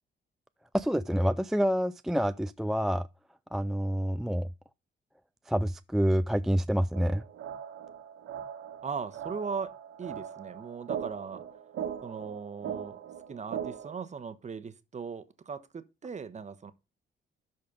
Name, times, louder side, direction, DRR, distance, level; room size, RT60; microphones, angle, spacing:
voice 1, 0.7-3.1 3.5-4.5 5.5-7.2, equal, ahead, 0.4 m, -27 dB
sound 1, 6.9-13.9, right 8 dB, 80° right, 1.8 m, -40 dB
voice 2, 8.8-11.5 12.0-13.0 13.3-16.7, right 5 dB, 35° right, 1.2 m, -39 dB
12.5 x 4.2 x 5.1 m
cardioid pair, 90°, 20 cm